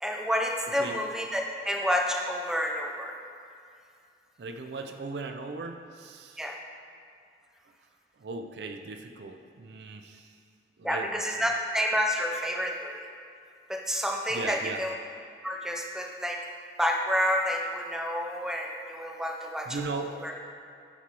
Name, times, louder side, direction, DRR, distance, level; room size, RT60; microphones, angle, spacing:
voice 1, 0.0-3.2 6.4-6.6 10.8-13.0 13.7-14.9 15.4-16.4 16.8-19.8 20.2-20.3, equal, 5° right, 1 dB, 0.4 m, -29 dB
voice 2, 4.4-6.5 8.2-10.3 10.8-11.6 14.3-14.8 19.7-20.2, right 3 dB, 70° right, 5 dB, 0.4 m, -38 dB
9.8 x 4.7 x 2.9 m, 2.4 s
head